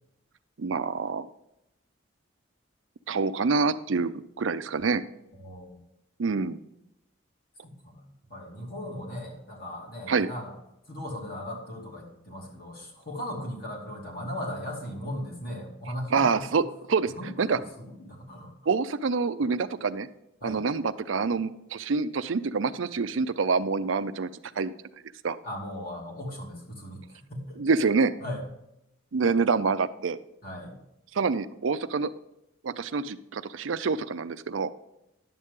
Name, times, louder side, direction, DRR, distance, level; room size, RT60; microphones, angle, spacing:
voice 1, 0.6-1.3 3.1-5.0 6.2-6.6 10.1-10.3 16.1-17.1 17.4-17.6 18.7-20.1 20.4-24.3 24.6-24.7 25.2-25.4 27.6-28.1 29.1-30.2 31.1-32.1 32.6-34.7, right 4 dB, 85° right, 12 dB, 0.5 m, -26 dB
voice 2, 5.4-5.8 7.8-10.5 10.9-16.4 17.2-17.6 18.0-18.5 20.4-20.6 25.4-27.0 27.3-27.6 28.2-28.4 30.4-30.8, left 1 dB, 50° left, -2 dB, 2.8 m, -37 dB
11.0 x 8.0 x 3.6 m, 0.84 s
head